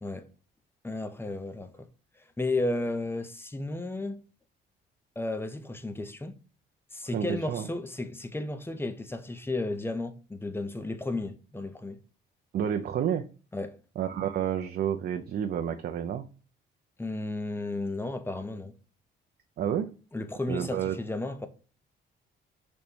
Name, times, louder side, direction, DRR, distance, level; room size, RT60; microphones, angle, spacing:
voice 1, 0.8-1.9 2.4-4.2 5.2-6.4 6.9-12.0 13.5-13.8 17.0-18.7 20.1-21.5, left 2 dB, 10° left, 0.6 m, -33 dB
voice 2, 7.1-7.7 12.5-13.2 14.0-16.3 19.6-19.9 20.5-21.0, right 9 dB, 50° right, 0.4 m, -30 dB
5.1 x 2.2 x 4.4 m
cardioid pair, 90°, 20 cm